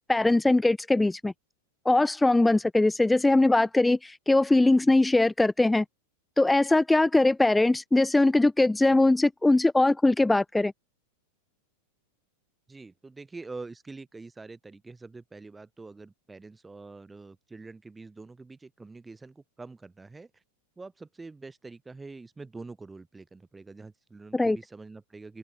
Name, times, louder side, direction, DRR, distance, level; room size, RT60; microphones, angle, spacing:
voice 1, 0.1-1.3 1.9-5.8 6.4-10.7 24.3-24.6, left 2 dB, 5° left, 0.4 m, -21 dB
voice 2, 12.7-20.4 20.8-25.4, right 3 dB, 10° right, 1.5 m, -45 dB
open air
figure-of-eight pair, 90°, 0 cm